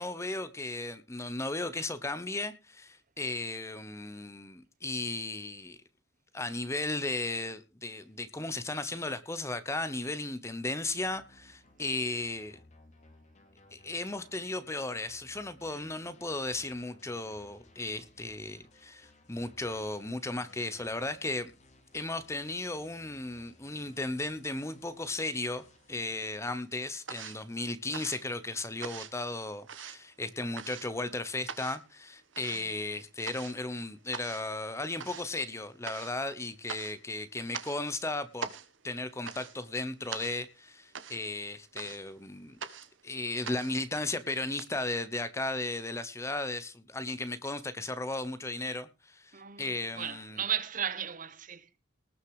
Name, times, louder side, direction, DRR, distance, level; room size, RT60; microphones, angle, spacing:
voice 1, 0.0-5.8 6.3-12.6 13.7-21.5 21.9-38.5 38.8-42.6 43.0-50.4, left 2 dB, 15° left, 0.9 m, -35 dB
sound 1, 10.8-26.2, left 2 dB, 35° left, 3.0 m, -61 dB
sound 2, 25.3-26.1 26.4-44.6, right 6 dB, 75° right, 1.2 m, -44 dB
voice 2, 49.3-49.6 49.9-51.7, right 8 dB, 45° right, 1.1 m, -35 dB
19.0 x 6.6 x 4.8 m
head